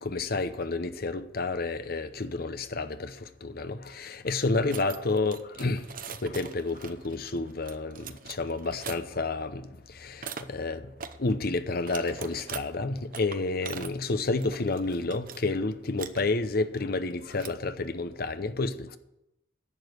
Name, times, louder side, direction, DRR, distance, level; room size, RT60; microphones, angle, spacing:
voice 1, 0.0-10.9 11.2-19.0, left 3 dB, 50° left, 0.8 m, -30 dB
sound 1, 4.7-9.0 10.2-10.4 11.0-11.2 11.7-12.6 13.1-15.4 15.7-16.2 17.1-17.7, right 7 dB, 45° right, 0.7 m, -42 dB
11.0 x 7.2 x 8.0 m
head